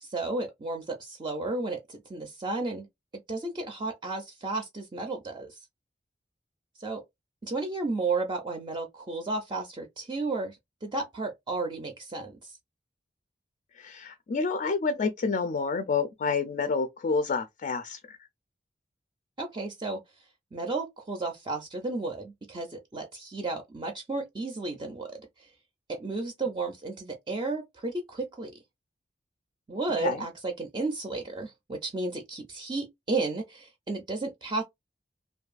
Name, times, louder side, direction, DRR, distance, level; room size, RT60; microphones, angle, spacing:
voice 1, 0.0-2.9 3.3-5.6 6.8-7.0 7.4-12.5 19.4-20.0 20.5-25.5 25.9-28.5 29.7-34.6, right 3 dB, 25° right, 0.4 m, -33 dB
voice 2, 13.8-18.2 30.0-30.2, left 4 dB, 45° left, 0.3 m, -29 dB
2.6 x 2.3 x 2.3 m
head